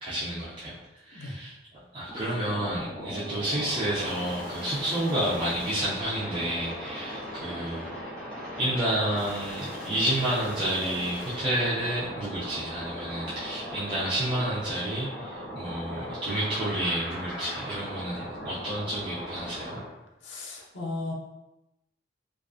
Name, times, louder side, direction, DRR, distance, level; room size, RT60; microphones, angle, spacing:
voice 1, 0.0-7.9 8.6-19.8, right 1 dB, 25° right, -10 dB, 0.4 m, -30 dB
sound 1, 2.1-19.9, equal, 5° left, 0.8 m, -38 dB
voice 2, 20.2-21.1, left 2 dB, 75° left, -1 dB, 0.5 m, -35 dB
2.5 x 2.3 x 2.3 m, 0.93 s
head